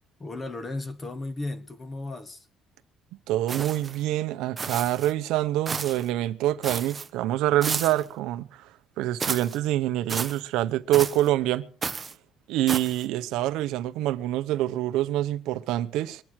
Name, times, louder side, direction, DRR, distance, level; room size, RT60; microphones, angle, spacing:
voice 1, 0.2-2.5, left 2 dB, 20° left, 1.4 m, -35 dB
voice 2, 3.3-8.7 9.0-11.7 12.5-16.2, right 14 dB, 80° right, 0.8 m, -26 dB
sound 1, 3.5-4.0 4.6-5.1 5.7-6.1 6.6-7.1 7.6-8.1 9.2-9.6 10.1-10.4 10.9-11.3 11.8-12.1 12.7-13.0, right 5 dB, 20° right, 0.7 m, -32 dB
23.5 x 9.0 x 4.6 m
cardioid pair, 155°, 0 cm